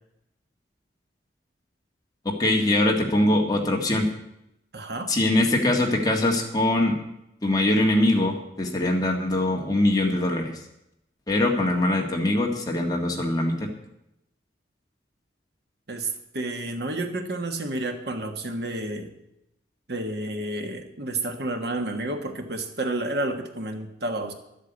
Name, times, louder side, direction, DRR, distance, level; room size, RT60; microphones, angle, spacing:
voice 1, 2.4-4.1 5.1-6.9 7.4-10.5 11.3-13.7, left 1 dB, 20° left, 1 dB, 1.7 m, -22 dB
voice 2, 4.7-5.1 15.9-19.1 19.9-24.3, right 2 dB, 60° right, 5 dB, 1.5 m, -30 dB
12.0 x 8.2 x 8.1 m, 0.86 s
head